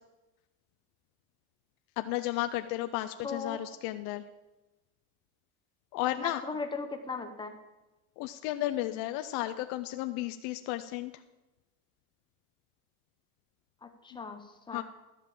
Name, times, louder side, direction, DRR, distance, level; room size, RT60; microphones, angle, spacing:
voice 1, 2.0-4.2 5.9-6.4 8.2-11.1 14.7-14.8, left 15 dB, 50° left, 8 dB, 0.5 m, -33 dB
voice 2, 3.2-3.6 6.2-7.6 13.8-14.8, left 4 dB, 10° left, 5 dB, 0.7 m, -38 dB
12.0 x 5.4 x 7.4 m, 1.1 s
cardioid pair, 160°, 44 cm